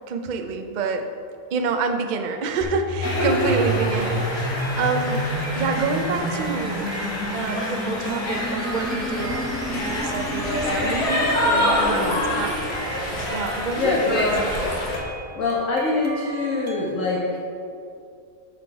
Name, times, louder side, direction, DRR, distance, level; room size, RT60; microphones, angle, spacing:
voice 1, 0.1-1.1 1.5-5.3 5.5-6.9 7.3-12.5 13.3-14.3, right 4 dB, 85° right, 6 dB, 0.4 m, -27 dB
sound 1, 2.6-12.6, equal, ahead, 1.0 m, -30 dB
sound 2, 3.0-15.0, left 1 dB, 85° left, 2.0 m, -27 dB
voice 2, 3.1-3.5 11.7-12.2 13.8-14.5 15.4-17.4, left 3 dB, 55° left, -4 dB, 1.4 m, -24 dB
sound 3, 4.5-16.9, right 2 dB, 40° right, 1.1 m, -39 dB
7.9 x 6.5 x 4.7 m, 2.6 s
omnidirectional pair, 1.7 m